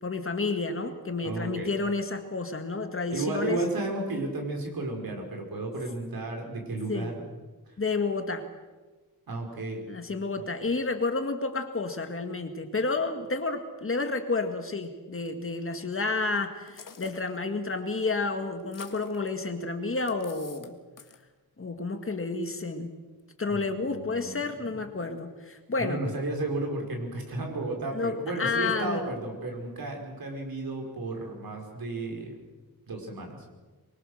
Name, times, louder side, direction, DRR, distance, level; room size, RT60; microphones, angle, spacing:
voice 1, 0.0-3.6 6.9-7.1 7.8-8.4 9.9-20.8 21.6-22.9 23.4-26.0 27.9-29.1, left 3 dB, 35° left, 6 dB, 1.9 m, -30 dB
voice 2, 1.2-1.7 3.1-7.3 7.7-7.8 9.3-9.8 10.4-10.5 23.5-24.7 25.8-32.4 32.9-33.4, right 2 dB, 65° right, 2 dB, 5.3 m, -33 dB
sound 1, 16.7-17.4 18.6-19.3 20.1-20.7 21.0-21.2, left 6 dB, 55° left, 1.8 m, -47 dB
25.0 x 22.5 x 6.6 m, 1.3 s
wide cardioid pair, 150°, 38 cm